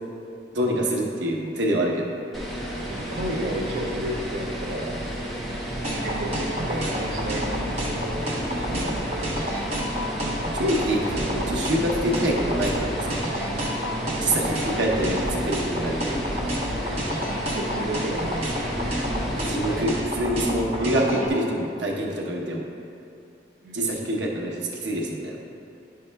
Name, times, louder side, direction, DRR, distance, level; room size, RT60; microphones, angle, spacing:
voice 1, 0.5-2.1 8.7-8.9 10.5-13.2 14.2-16.2 19.3-22.7 23.7-25.4, right 1 dB, 80° right, -2 dB, 0.9 m, -26 dB
sound 1, 2.3-19.8, equal, ahead, 0.7 m, -32 dB
voice 2, 2.8-5.0 6.0-8.1 17.5-18.3 23.6-23.9, right 1 dB, 55° right, -4 dB, 0.6 m, -32 dB
sound 2, 5.8-21.3, equal, 35° right, 0.9 m, -29 dB
9.7 x 5.5 x 2.3 m, 2.5 s
head